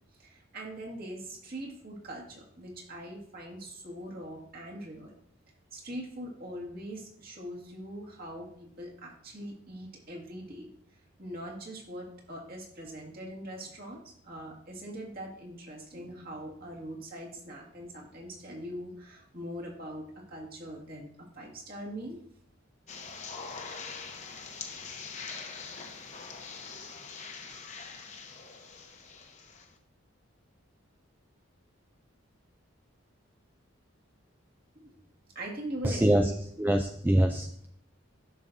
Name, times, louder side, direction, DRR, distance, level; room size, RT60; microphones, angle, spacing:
voice 1, 0.2-5.1 5.7-10.7 11.2-22.2 34.8-34.9 35.4-36.3, right 1 dB, 45° right, -2 dB, 1.9 m, -42 dB
sound 1, 22.9-29.7, left 5 dB, 35° left, 0.9 m, -43 dB
voice 2, 35.8-36.3 36.6-37.7, right 1 dB, 10° right, 5 dB, 0.3 m, -24 dB
11.0 x 6.1 x 2.7 m, 0.66 s
head